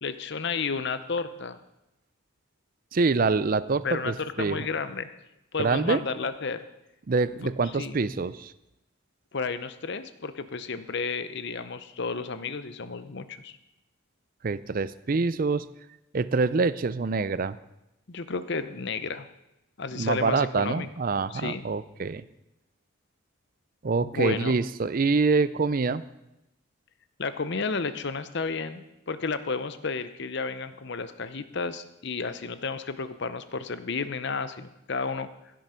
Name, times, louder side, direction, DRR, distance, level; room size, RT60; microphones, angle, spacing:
voice 1, 0.0-1.6 3.8-5.1 5.5-6.6 7.4-7.5 7.8-7.9 9.3-13.6 18.1-19.3 19.8-20.9 21.3-21.7 24.0-24.6 27.2-35.3, left 4 dB, 55° left, 12 dB, 0.7 m, -32 dB
voice 2, 2.9-4.7 5.6-6.0 7.1-8.5 14.4-15.7 16.1-17.6 20.0-22.2 23.8-26.0, right 4 dB, 40° right, 16 dB, 0.4 m, -25 dB
16.0 x 7.7 x 5.7 m, 0.90 s
head